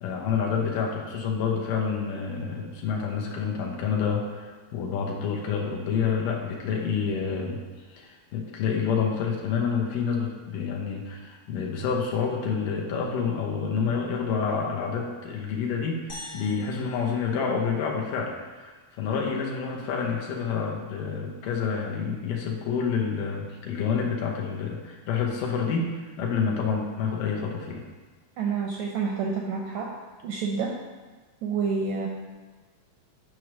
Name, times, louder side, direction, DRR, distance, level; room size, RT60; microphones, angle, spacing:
voice 1, 0.0-7.6 7.9-27.8, left 6 dB, 80° left, -1 dB, 2.7 m, -28 dB
sound 1, 16.1-18.5, left 2 dB, 55° left, 1.6 m, -45 dB
voice 2, 28.4-29.9 30.2-30.7 31.4-32.1, right 5 dB, 80° right, 0 dB, 1.6 m, -28 dB
9.3 x 3.2 x 6.1 m, 1.3 s
omnidirectional pair, 3.8 m